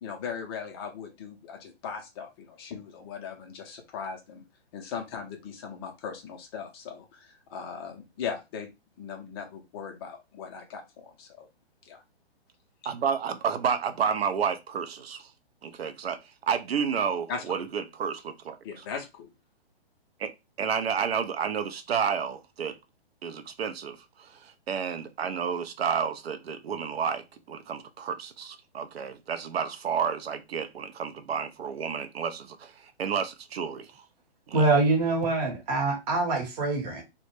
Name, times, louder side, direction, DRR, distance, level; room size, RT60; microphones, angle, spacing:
voice 1, 0.0-4.4 4.7-8.7 9.0-11.5 11.8-12.0 17.3-17.4 18.6-19.3, left 6 dB, 25° left, 0.4 m, -39 dB
voice 2, 12.8-15.3 15.6-16.2 16.5-18.6 20.2-20.3 20.6-22.8 23.2-33.9 34.5-34.7, right 7 dB, 75° right, 0.5 m, -30 dB
voice 3, 34.5-37.0, right 3 dB, 40° right, 1.0 m, -24 dB
2.1 x 2.1 x 3.0 m
hypercardioid pair, 130°, 31 cm